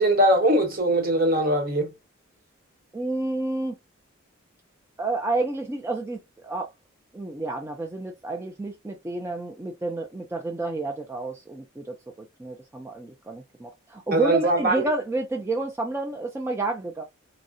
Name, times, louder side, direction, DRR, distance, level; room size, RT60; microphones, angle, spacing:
voice 1, 0.0-1.9 14.1-14.8, right 1 dB, 45° right, 1.0 m, -21 dB
voice 2, 2.9-3.8 5.0-6.7 7.1-17.0, right 2 dB, 10° right, 0.3 m, -30 dB
3.5 x 2.0 x 2.5 m
head